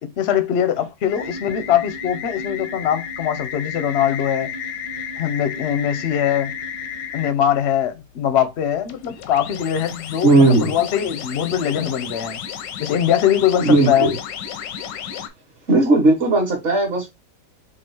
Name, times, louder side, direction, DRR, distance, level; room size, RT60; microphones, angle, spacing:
voice 1, 0.0-4.5 5.2-6.5 7.1-12.4 12.8-14.1, left 9 dB, 60° left, 0.7 m, -21 dB
sound 1, 1.1-7.3 8.9-15.3, left 7 dB, 90° left, 1.3 m, -32 dB
voice 2, 10.2-10.7 13.6-14.1 15.7-17.1, right 2 dB, 45° right, 1.3 m, -16 dB
3.8 x 2.4 x 4.5 m
omnidirectional pair, 1.9 m